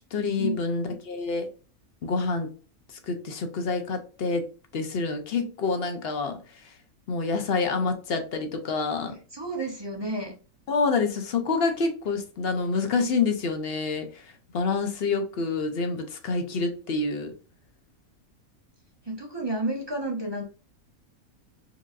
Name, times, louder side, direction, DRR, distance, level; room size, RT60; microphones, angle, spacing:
voice 1, 0.1-1.5 2.0-2.5 2.9-6.7 7.1-9.2 10.7-17.3, left 4 dB, 60° left, 0.6 m, -27 dB
voice 2, 9.3-10.3 19.0-20.4, right 2 dB, 35° right, 0.4 m, -30 dB
4.5 x 2.5 x 2.4 m
omnidirectional pair, 1.5 m